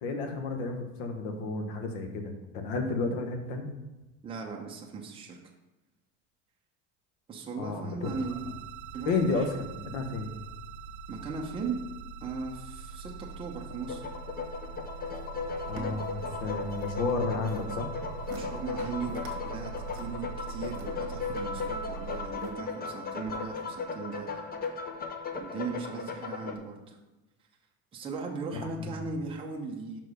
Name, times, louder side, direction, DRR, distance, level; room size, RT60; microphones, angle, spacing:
voice 1, 0.0-3.7 7.6-8.1 9.1-10.3 15.7-17.9 28.6-28.7, left 3 dB, 75° left, 5 dB, 1.3 m, -32 dB
voice 2, 4.2-5.4 7.3-8.5 8.9-9.4 11.1-11.8 12.2-13.1 13.4-14.1 18.3-24.4 25.4-27.0 27.9-30.0, right 4 dB, 15° right, -1 dB, 0.7 m, -38 dB
sound 1, 8.0-22.3, right 5 dB, 85° right, 0.7 m, -42 dB
sound 2, 13.7-26.5, left 4 dB, 25° left, 0.5 m, -37 dB
sound 3, 15.1-16.9 17.2-17.7 18.1-18.4 18.8-19.4 19.7-21.7 22.2-22.8 23.3-23.4, right 5 dB, 45° right, 1.4 m, -48 dB
6.0 x 4.6 x 4.9 m, 1.1 s
cardioid pair, 155°, 40 cm